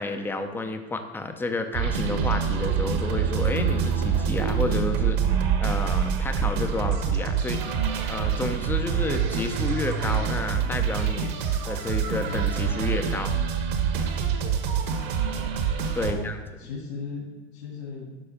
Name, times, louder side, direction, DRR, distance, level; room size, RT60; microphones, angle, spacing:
voice 1, 0.0-7.6 8.1-11.3 11.6-13.4 15.9-16.4, left 2 dB, 5° left, 6 dB, 0.6 m, -31 dB
sound 1, 1.7-16.1, right 7 dB, 50° right, 1.3 m, -26 dB
voice 2, 15.3-15.7 16.0-16.3 16.6-18.2, left 4 dB, 70° left, -6 dB, 2.8 m, -37 dB
12.0 x 4.1 x 5.2 m, 1.1 s
hypercardioid pair, 125°, 32 cm